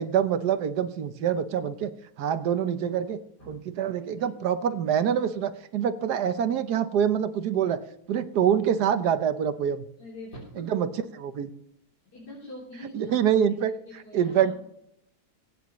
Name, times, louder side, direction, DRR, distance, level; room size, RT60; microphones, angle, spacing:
voice 1, 0.0-1.9 2.2-3.2 3.5-7.8 8.1-9.9 10.6-11.5 12.9-13.7 14.1-14.5, right 8 dB, 75° right, 11 dB, 1.4 m, -25 dB
voice 2, 10.0-10.7 12.1-13.2 13.9-14.5, left 1 dB, 80° left, -6 dB, 4.4 m, -43 dB
23.0 x 9.4 x 3.1 m, 0.79 s
omnidirectional pair, 1.7 m